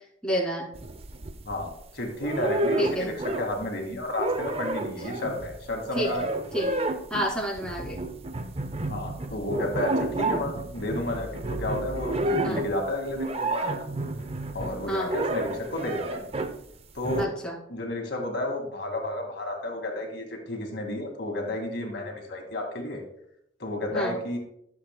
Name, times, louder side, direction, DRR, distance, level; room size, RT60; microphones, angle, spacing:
voice 1, 0.2-0.7 2.8-3.1 6.0-6.1 6.5-6.7 7.1-8.0 12.4-12.6 14.9-15.1 17.2-17.5 23.9-24.1, equal, 5° left, -4 dB, 2.3 m, -28 dB
sound 1, 0.7-1.8 2.2-3.7 4.0-16.6 17.0-17.3, right 2 dB, 30° right, 0.6 m, -30 dB
voice 2, 1.4-6.4 8.9-13.9 14.5-16.2 16.9-17.3 17.7-23.0 23.6-24.4, left 1 dB, 60° left, 2 dB, 2.0 m, -32 dB
14.0 x 7.3 x 2.2 m, 0.76 s
head